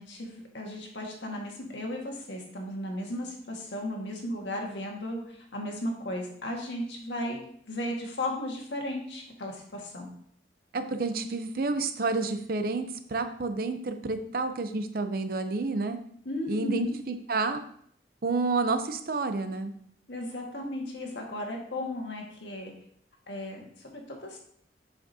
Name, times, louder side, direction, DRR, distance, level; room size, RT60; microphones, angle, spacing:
voice 1, 0.0-7.4 7.7-10.1 16.2-17.0 20.1-22.7 23.3-24.4, left 1 dB, 85° left, 0 dB, 1.6 m, -35 dB
voice 2, 10.7-16.0 16.5-17.6 18.2-19.7, right 3 dB, 55° right, 9 dB, 0.6 m, -29 dB
7.6 x 5.9 x 2.7 m, 0.65 s
head